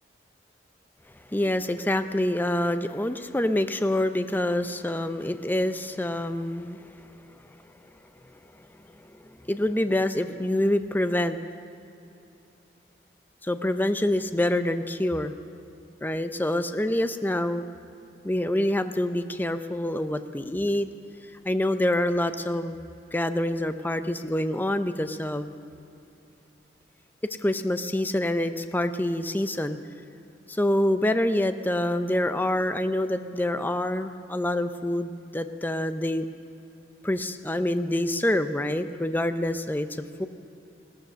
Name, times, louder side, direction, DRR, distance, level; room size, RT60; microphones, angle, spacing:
voice 1, 1.3-7.4 8.6-11.4 13.4-15.3 16.0-17.6 18.2-20.9 21.4-22.8 23.1-25.5 27.4-29.8 30.5-36.2 37.0-39.9 40.2-40.3, left 1 dB, 10° left, 10 dB, 0.5 m, -26 dB
17.5 x 13.0 x 6.3 m, 2.7 s
head